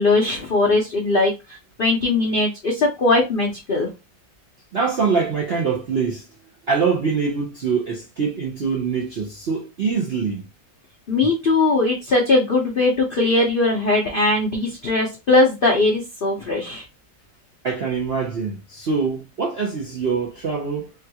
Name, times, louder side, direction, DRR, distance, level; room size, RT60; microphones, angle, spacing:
voice 1, 0.0-3.9 11.1-16.8, left 2 dB, 90° left, 0.4 m, -20 dB
voice 2, 4.7-6.3 6.7-10.4 17.6-20.9, right 5 dB, 70° right, 0.5 m, -24 dB
3.6 x 2.3 x 2.8 m
omnidirectional pair, 2.0 m